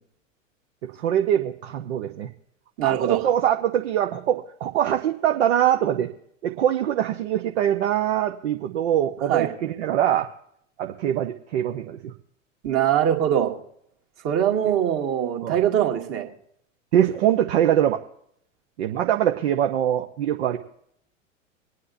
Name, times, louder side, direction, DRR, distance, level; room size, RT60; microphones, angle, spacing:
voice 1, 0.8-2.3 2.8-6.1 6.4-10.3 10.8-12.1 15.4-15.6 16.9-18.0 18.8-20.6, right 10 dB, 55° right, 4 dB, 0.9 m, -23 dB
voice 2, 2.8-3.3 9.3-9.5 12.6-13.5 14.2-16.3, right 10 dB, 35° right, 2 dB, 2.0 m, -22 dB
25.5 x 9.6 x 2.7 m, 0.70 s
figure-of-eight pair, 90°, 39 cm